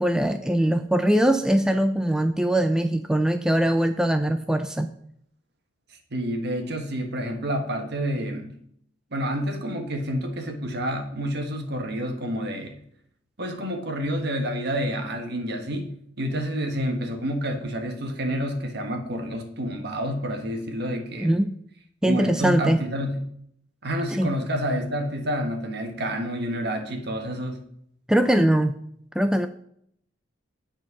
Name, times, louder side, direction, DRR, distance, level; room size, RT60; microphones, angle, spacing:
voice 1, 0.0-4.9 21.2-21.6 22.0-22.8 24.1-24.3 28.1-28.7 29.2-29.5, right 1 dB, 5° right, 8 dB, 0.3 m, -21 dB
voice 2, 6.1-8.5 9.1-12.7 13.4-21.3 22.0-23.2 23.8-27.6, equal, 60° right, 4 dB, 1.5 m, -29 dB
9.8 x 4.4 x 6.0 m, 0.68 s
head